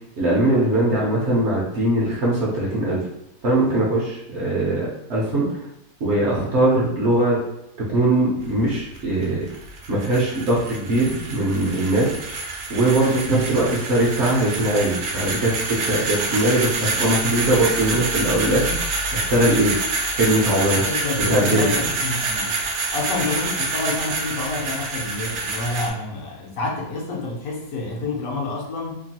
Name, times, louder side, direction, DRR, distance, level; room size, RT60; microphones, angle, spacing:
voice 1, 0.2-3.0 3.4-5.5 6.0-7.4 7.9-9.4 9.9-12.1 12.7-18.7 19.1-19.7 20.1-20.8 21.3-21.7, right 1 dB, 60° right, -5 dB, 0.8 m, -21 dB
sound 1, 8.4-25.9, right 3 dB, 80° right, 1.1 m, -27 dB
voice 2, 20.9-22.6 22.9-29.0, left 2 dB, 70° left, -1 dB, 1.0 m, -28 dB
2.9 x 2.3 x 2.7 m, 0.80 s
omnidirectional pair, 1.6 m